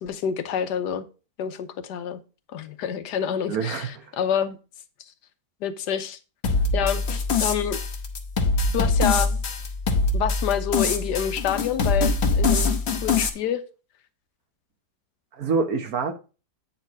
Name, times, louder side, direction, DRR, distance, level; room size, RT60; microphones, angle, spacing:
voice 1, 0.0-1.1 1.4-2.2 2.5-4.6 5.6-6.2 6.7-7.0 7.4-7.8 8.7-9.4 10.1-12.7 13.0-13.6, left 8 dB, 80° left, 1.4 m, -27 dB
voice 2, 3.5-4.1 15.3-16.1, right 5 dB, 60° right, 1.5 m, -26 dB
sound 1, 6.4-13.3, left 3 dB, 45° left, 1.1 m, -23 dB
8.8 x 4.5 x 4.6 m
omnidirectional pair, 1.8 m